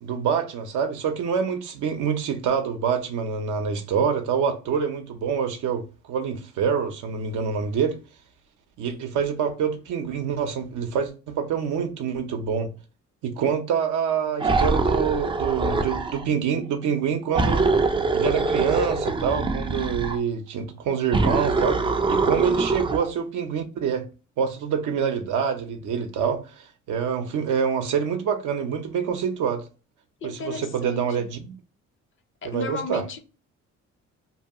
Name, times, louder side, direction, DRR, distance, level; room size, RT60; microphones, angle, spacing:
voice 1, 0.0-8.0 8.8-12.7 13.2-17.7 18.1-21.8 22.1-24.0 24.4-29.6 30.2-31.5 32.4-33.0, right 7 dB, 75° right, 0.6 m, -26 dB
sound 1, 14.4-16.2 17.3-20.2 21.1-23.1, right 3 dB, 15° right, 0.3 m, -23 dB
voice 2, 22.4-22.8 30.2-31.3 32.4-33.2, left 2 dB, 40° left, 0.6 m, -34 dB
2.8 x 2.3 x 2.7 m
cardioid pair, 90°, 30 cm